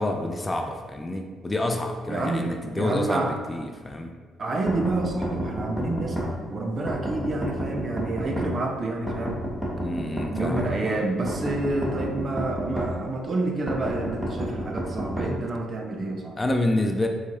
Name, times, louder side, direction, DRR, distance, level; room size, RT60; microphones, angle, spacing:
voice 1, 0.0-4.1 9.8-11.0 16.4-17.1, left 1 dB, 20° left, 4 dB, 0.4 m, -28 dB
voice 2, 2.1-3.3 4.4-9.4 10.3-16.4, right 2 dB, 40° right, 3 dB, 0.5 m, -28 dB
sound 1, 4.7-6.3 6.9-8.5 9.1-10.7 11.3-12.9 13.7-15.3, right 1 dB, ahead, 0.9 m, -30 dB
4.4 x 2.3 x 2.8 m, 1.5 s
figure-of-eight pair, 45°, 0 cm